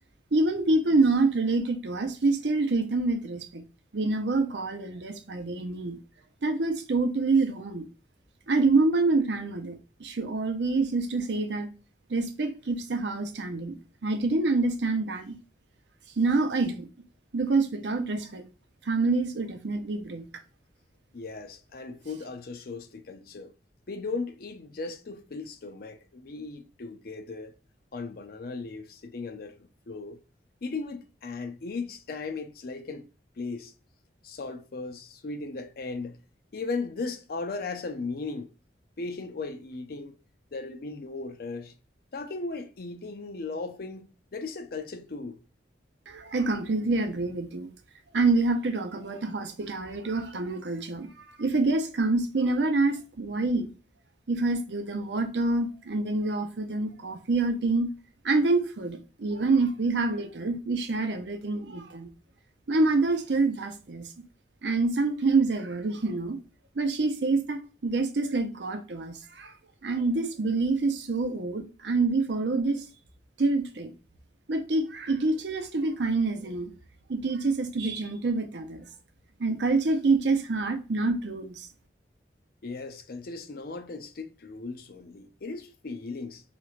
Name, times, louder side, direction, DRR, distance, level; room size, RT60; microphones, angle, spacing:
voice 1, 0.3-3.6 3.9-6.0 6.4-7.9 8.5-11.7 12.1-15.3 16.2-16.9 17.3-18.4 18.9-20.2 46.1-47.7 48.1-53.7 54.3-57.9 58.2-62.1 62.7-64.0 64.6-66.4 66.8-69.5 69.8-72.8 73.4-73.9 74.5-76.7 77.1-78.8 79.4-81.7, right 3 dB, 75° right, 0.6 m, -26 dB
voice 2, 21.1-23.5 23.9-27.5 27.9-30.2 30.6-33.1 33.4-33.7 34.2-36.2 36.5-38.5 39.0-40.2 40.5-41.7 42.1-45.4 82.6-86.4, left 3 dB, 55° left, 0.5 m, -37 dB
3.3 x 3.1 x 2.4 m
head